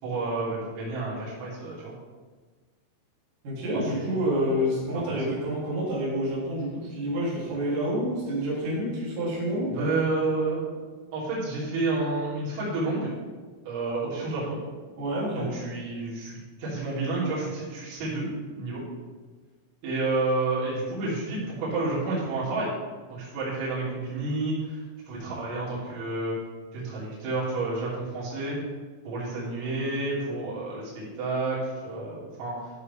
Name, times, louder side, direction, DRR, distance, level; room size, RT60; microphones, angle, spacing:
voice 1, 0.0-1.9 3.9-4.1 5.1-5.2 9.7-10.6 11.1-13.1 13.7-14.6 15.3-18.3 18.6-18.8 19.8-22.7 23.1-24.8 25.1-26.4 26.7-28.6 29.1-32.6, right 2 dB, 80° right, -8 dB, 5.5 m, -30 dB
voice 2, 3.4-9.9 15.0-15.5, equal, 45° right, -10 dB, 4.3 m, -28 dB
14.0 x 6.7 x 3.6 m, 1.4 s
omnidirectional pair, 5.8 m